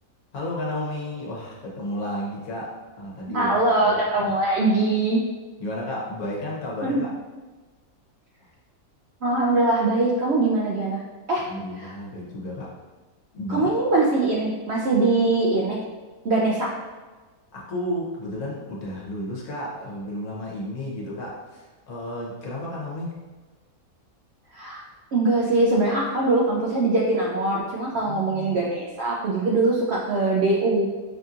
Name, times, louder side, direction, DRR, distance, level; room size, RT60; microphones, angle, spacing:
voice 1, 0.3-3.5 3.9-4.3 5.6-7.1 11.4-12.7 13.3-13.7 17.5-23.2 28.1-28.6, left 1 dB, 75° left, -4 dB, 1.4 m, -32 dB
voice 2, 3.3-5.2 6.8-7.0 9.2-11.0 11.3-11.4 11.8-11.9 13.5-15.8 16.2-16.7 24.5-24.8 25.1-30.9, right 2 dB, 70° right, -3 dB, 0.6 m, -22 dB
5.9 x 2.7 x 2.4 m, 1.3 s
omnidirectional pair, 1.6 m